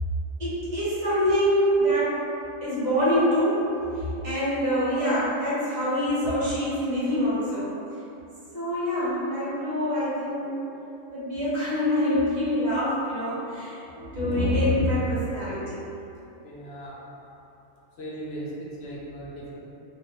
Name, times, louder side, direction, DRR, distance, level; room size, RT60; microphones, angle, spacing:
voice 1, 0.4-2.3 2.6-3.8 4.2-7.8 8.5-10.6 11.1-15.8 17.2-17.3, equal, 35° right, -10 dB, 0.9 m, -25 dB
voice 2, 16.4-17.0 18.0-19.6, right 1 dB, 60° left, -6 dB, 0.8 m, -38 dB
2.5 x 2.4 x 3.5 m, 2.8 s
omnidirectional pair, 1.4 m